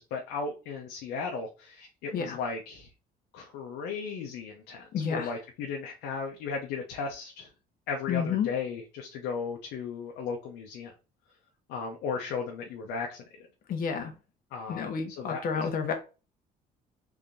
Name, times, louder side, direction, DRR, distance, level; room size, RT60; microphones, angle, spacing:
voice 1, 0.0-2.9 3.3-7.5 7.9-10.9 11.7-13.2 14.5-15.6, left 5 dB, 90° left, 0.9 m, -36 dB
voice 2, 4.9-5.3 8.1-8.5 13.7-14.1 14.7-15.9, left 6 dB, 60° left, 1.2 m, -30 dB
3.6 x 3.6 x 2.6 m
cardioid pair, 110°, 17 cm